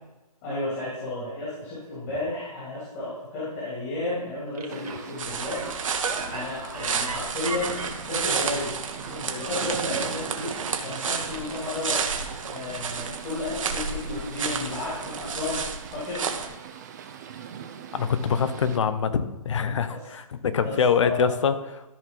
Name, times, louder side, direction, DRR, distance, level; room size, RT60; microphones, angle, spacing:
voice 1, 0.4-5.6 6.3-8.7 9.0-10.5 10.8-12.0 12.5-15.6 15.9-16.2 20.6-21.3, left 2 dB, 25° left, -9 dB, 3.2 m, -32 dB
sound 1, 4.5-9.4 9.8-12.2 12.6-12.7, right 4 dB, 80° right, 2.3 m, -37 dB
sound 2, 4.7-18.8, right 8 dB, 30° right, 0.6 m, -42 dB
sound 3, 5.2-16.5, right 6 dB, 60° right, 1.2 m, -31 dB
voice 2, 17.9-21.8, left 6 dB, 55° left, 11 dB, 0.8 m, -24 dB
13.5 x 4.8 x 3.9 m, 1.0 s
hypercardioid pair, 160°, 19 cm